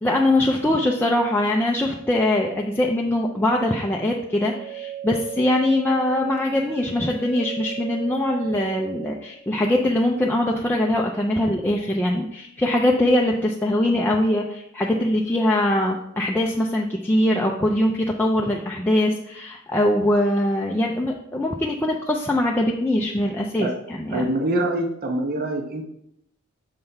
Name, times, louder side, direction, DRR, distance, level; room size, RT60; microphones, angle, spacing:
voice 1, 0.0-24.3, left 1 dB, 10° left, -1 dB, 0.4 m, -22 dB
sound 1, 4.4-9.3, right 10 dB, 30° left, 1.1 m, -36 dB
voice 2, 24.1-25.8, right 1 dB, 45° right, 3 dB, 0.8 m, -24 dB
6.6 x 3.4 x 5.6 m, 0.76 s
head